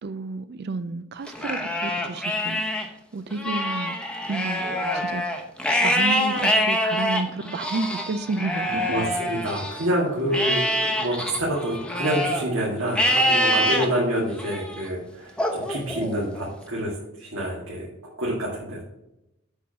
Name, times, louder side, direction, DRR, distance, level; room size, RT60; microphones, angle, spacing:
voice 1, 0.0-3.9 4.3-4.6 4.9-5.2 5.8-9.0 10.4-10.7, right 3 dB, 50° right, 0.4 m, -31 dB
Livestock farm animals working animals, 1.3-2.9 3.3-9.9 10.3-12.4 12.9-13.9 14.4-14.8 15.4-16.5, equal, 5° left, 0.9 m, -25 dB
voice 2, 8.9-17.9 18.2-18.8, right 1 dB, 75° right, 2.1 m, -27 dB
8.0 x 4.7 x 5.9 m
head